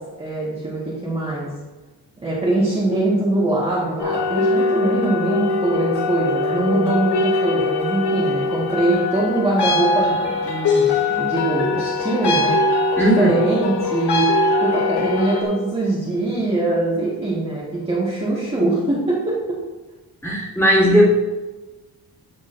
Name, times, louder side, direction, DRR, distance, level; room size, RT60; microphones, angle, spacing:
voice 1, 0.2-1.5 2.2-12.6 13.0-14.2 14.6-19.5, right 2 dB, 15° right, -8 dB, 1.5 m, -22 dB
sound 1, 4.0-15.4, left 3 dB, 85° left, 1.3 m, -21 dB
voice 2, 13.0-13.3 20.2-21.1, equal, 5° left, -8 dB, 2.1 m, -16 dB
12.0 x 6.3 x 2.6 m, 1.2 s
wide cardioid pair, 175°, 39 cm